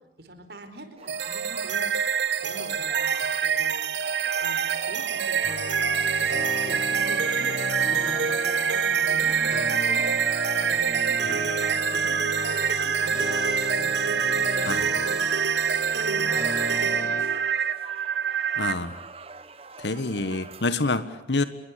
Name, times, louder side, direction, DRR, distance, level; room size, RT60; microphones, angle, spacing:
voice 1, 0.0-1.9 2.4-10.1 10.5-13.2 13.7-15.2 15.9-17.1, right 1 dB, 65° right, 8 dB, 4.6 m, -44 dB
sound 1, 1.0-20.6, right 4 dB, 35° right, 1.3 m, -44 dB
sound 2, 1.1-18.7, right 7 dB, 90° right, 1.5 m, -25 dB
sound 3, 5.4-17.2, left 2 dB, 45° left, 4.7 m, -35 dB
voice 2, 18.6-19.0 19.8-21.4, left 3 dB, 85° left, 12 dB, 1.6 m, -27 dB
27.5 x 22.5 x 8.4 m, 0.79 s
head